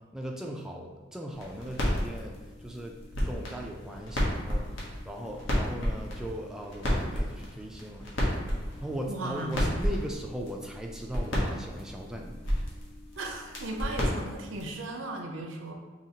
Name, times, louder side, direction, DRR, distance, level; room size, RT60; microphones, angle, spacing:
voice 1, 0.1-2.9 3.2-4.6 5.0-8.3 8.8-12.6, equal, 5° right, 0 dB, 0.3 m, -38 dB
sound 1, 1.3-14.8, equal, 70° left, 1.1 m, -32 dB
voice 2, 9.1-9.6 13.2-15.7, right 2 dB, 75° right, 2 dB, 0.6 m, -36 dB
5.0 x 2.8 x 2.8 m, 1.3 s
head